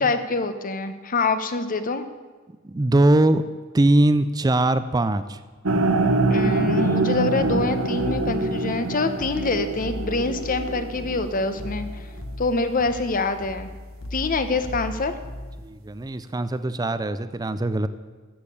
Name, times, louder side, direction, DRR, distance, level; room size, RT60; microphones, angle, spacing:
voice 1, 0.0-2.0 6.3-11.9 12.4-13.7 14.1-15.1, left 3 dB, 40° left, 10 dB, 1.0 m, -25 dB
voice 2, 2.6-3.4 3.7-5.4 15.6-17.9, right 2 dB, 20° right, 13 dB, 0.4 m, -21 dB
sound 1, 5.7-11.8, right 2 dB, 70° right, 1.1 m, -24 dB
sound 2, 7.2-15.7, left 1 dB, 80° left, 1.3 m, -37 dB
13.5 x 7.5 x 8.5 m, 1.3 s
head